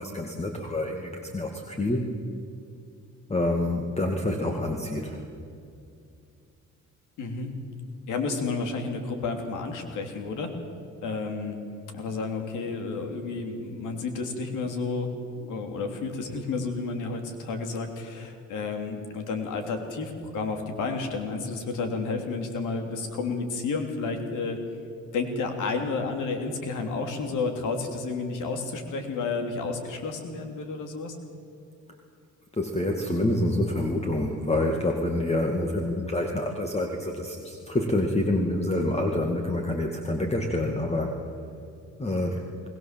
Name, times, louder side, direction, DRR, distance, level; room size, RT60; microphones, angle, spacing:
voice 1, 0.0-2.0 3.3-5.2 32.6-41.2 42.0-42.5, left 1 dB, 20° left, 3 dB, 2.3 m, -27 dB
voice 2, 7.2-7.5 8.1-10.5 11.0-11.6 11.9-15.1 15.4-24.6 25.1-31.2, left 4 dB, 90° left, 5 dB, 3.2 m, -31 dB
21.0 x 20.5 x 7.6 m, 2.5 s
cardioid pair, 90°, 30 cm